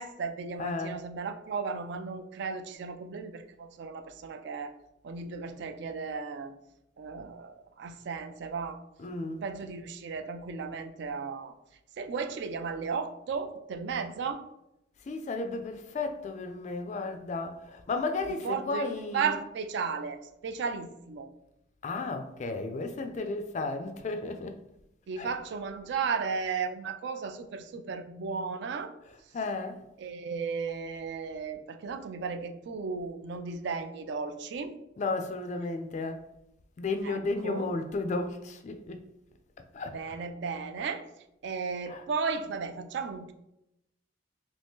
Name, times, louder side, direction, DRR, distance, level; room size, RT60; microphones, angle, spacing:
voice 1, 0.0-4.7 5.0-6.5 7.0-8.8 9.4-11.5 12.0-14.4 18.4-20.2 20.4-21.3 25.1-28.9 30.0-34.8 37.0-37.7 39.9-41.0 41.4-43.3, right 5 dB, 60° right, 0.3 m, -35 dB
voice 2, 0.6-1.0 9.0-9.5 15.0-19.4 21.8-24.6 25.2-25.4 29.0-29.8 35.0-36.2 36.8-39.1 39.7-40.0 41.9-42.1, left 3 dB, 35° left, 0.3 m, -34 dB
3.0 x 2.7 x 3.5 m
head